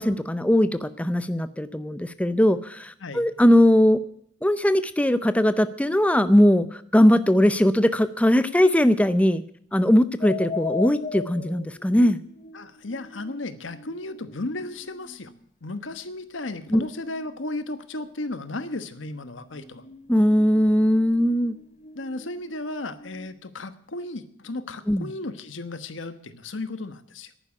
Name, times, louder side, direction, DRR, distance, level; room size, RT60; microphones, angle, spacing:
voice 1, 0.0-4.0 4.4-9.4 9.7-12.2 16.7-16.8 20.1-21.6 24.9-25.1, equal, 5° left, 12 dB, 0.5 m, -20 dB
sound 1, 10.2-15.4 17.1-17.4 19.2-23.3, left 4 dB, 35° left, 1.1 m, -39 dB
voice 2, 12.5-15.3 15.6-19.8 21.9-27.3, left 2 dB, 80° left, 11 dB, 1.2 m, -34 dB
11.0 x 9.6 x 9.8 m, 0.69 s
head